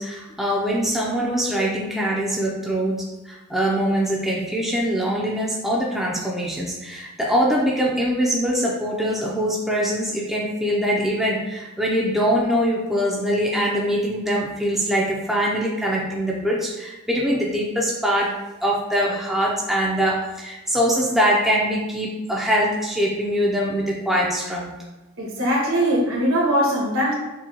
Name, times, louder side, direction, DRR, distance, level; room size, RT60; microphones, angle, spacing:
voice 1, 0.0-18.3 18.6-24.7, equal, ahead, -4 dB, 0.5 m, -23 dB
voice 2, 25.2-27.1, equal, 75° right, -3 dB, 1.3 m, -21 dB
6.1 x 2.2 x 2.8 m, 1.1 s
head